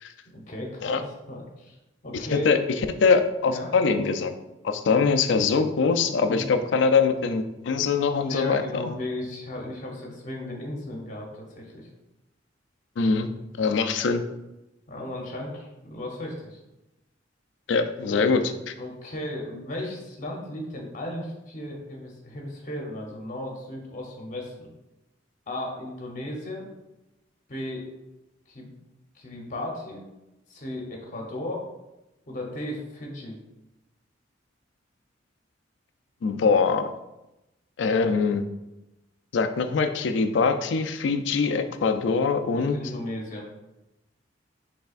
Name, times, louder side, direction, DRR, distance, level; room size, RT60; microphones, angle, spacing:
voice 1, 0.3-1.8 2.0-2.5 3.4-3.7 6.2-6.7 8.2-11.9 14.9-16.6 18.1-18.2 18.8-24.7 25.5-26.7 27.5-27.9 28.5-28.7 29.1-30.0 30.5-31.7 32.3-33.4 42.5-43.5, left 1 dB, 45° left, -1 dB, 0.8 m, -35 dB
voice 2, 3.0-4.3 4.6-8.6 13.0-13.3 13.6-14.2 17.7-18.7 36.2-36.9 37.8-38.4 39.3-42.8, left 5 dB, 70° left, 8 dB, 0.4 m, -23 dB
5.5 x 3.4 x 2.4 m, 0.95 s
head